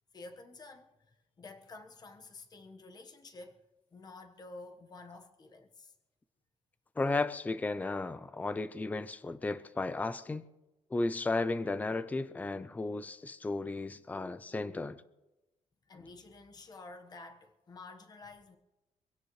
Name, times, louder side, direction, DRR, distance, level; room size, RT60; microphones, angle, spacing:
voice 1, 0.1-3.6 3.9-5.9 15.9-18.6, left 3 dB, 30° left, 1.4 m, -50 dB
voice 2, 7.0-10.5 10.9-15.0, left 3 dB, 10° left, 0.5 m, -34 dB
24.0 x 16.5 x 3.2 m
cardioid pair, 160°, 13 cm